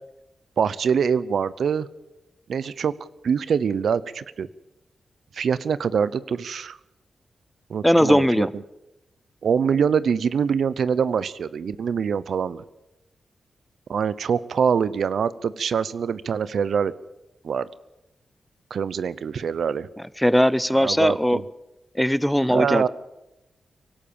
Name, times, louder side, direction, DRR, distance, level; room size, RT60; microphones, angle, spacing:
voice 1, 0.6-1.9 2.5-2.9 3.2-4.5 5.3-6.8 7.7-8.5 9.4-12.6 13.9-16.9 17.4-17.7 18.7-19.9 20.7-21.4 22.5-22.9, right 6 dB, 75° right, 17 dB, 0.7 m, -24 dB
voice 2, 7.8-8.5 20.2-21.4 21.9-22.9, equal, 5° left, 17 dB, 0.9 m, -19 dB
24.0 x 12.5 x 8.8 m, 0.95 s
cardioid pair, 60°, 0 cm